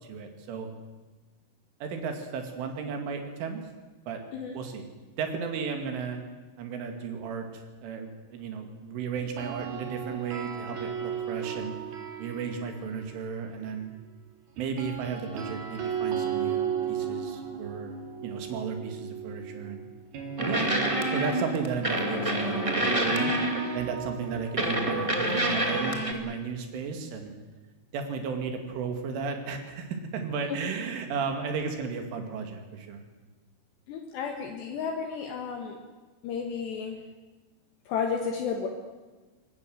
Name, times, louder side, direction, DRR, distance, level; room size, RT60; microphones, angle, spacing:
voice 1, 0.0-0.7 1.8-3.6 4.1-4.2 4.5-4.9 5.2-6.2 6.6-11.7 12.2-13.9 14.6-18.0 18.2-19.9 20.4-20.7 21.1-27.4 27.9-33.0, right 5 dB, 90° right, 5 dB, 5.0 m, -34 dB
sound 1, 9.2-13.3 14.6-26.4, right 8 dB, 55° right, 4.4 m, -36 dB
sound 2, 20.4-23.9 24.6-26.1, right 1 dB, 30° right, 0.5 m, -27 dB
voice 2, 33.9-35.8 36.2-37.0 37.9-38.7, left 6 dB, 70° left, 3 dB, 3.6 m, -32 dB
24.0 x 20.0 x 8.0 m, 1.2 s
omnidirectional pair, 5.4 m